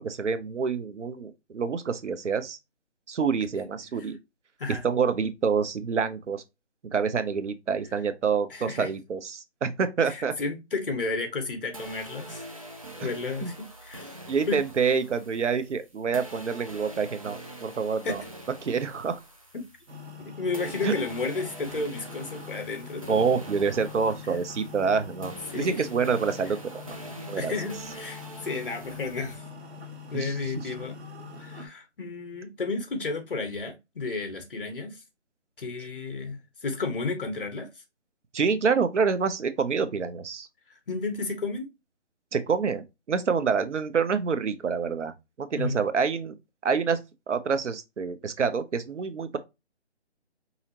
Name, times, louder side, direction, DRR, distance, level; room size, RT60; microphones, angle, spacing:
voice 1, 0.0-2.6 3.1-4.2 4.7-6.4 6.9-10.3 13.0-13.1 13.4-13.5 14.3-18.2 18.6-19.2 20.8-20.9 23.1-26.8 27.3-27.5 30.1-30.3 38.3-40.5 42.3-45.1 45.4-46.4 46.6-47.0 47.3-49.4, right 5 dB, 85° right, 0.8 m, -27 dB
voice 2, 8.5-8.9 10.0-12.5 13.0-14.1 14.5-14.6 18.0-18.2 20.2-23.3 25.5-25.7 27.4-29.4 30.1-31.0 31.4-35.0 35.6-37.7 40.7-41.7 45.6-45.8, left 3 dB, 50° left, 1.1 m, -32 dB
sound 1, 11.7-20.2 20.5-29.3, right 1 dB, 30° right, 0.5 m, -44 dB
sound 2, 19.9-31.7, left 4 dB, 65° right, 1.3 m, -43 dB
4.8 x 2.8 x 2.8 m
hypercardioid pair, 170°, 35 cm